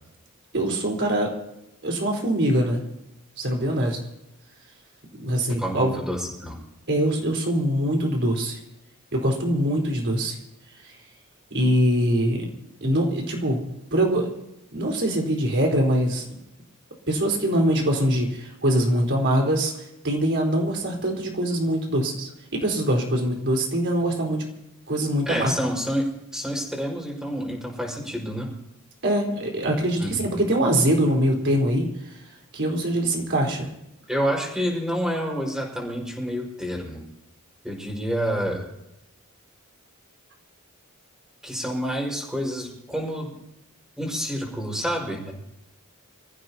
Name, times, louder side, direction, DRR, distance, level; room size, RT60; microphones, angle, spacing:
voice 1, 0.5-1.3 1.8-2.8 3.4-4.0 5.2-6.0 6.9-8.6 9.1-10.4 10.8-10.9 11.5-12.5 12.8-14.3 14.7-16.3 17.1-19.7 20.0-24.4 24.9-25.5 29.0-32.2 32.5-33.7, right 1 dB, 55° right, 0 dB, 4.3 m, -23 dB
voice 2, 5.6-6.6 25.2-28.5 30.0-30.3 34.1-37.0 37.6-38.6 41.4-43.3 44.0-45.3, equal, 5° right, -1 dB, 5.0 m, -28 dB
27.0 x 15.5 x 2.9 m, 0.88 s
head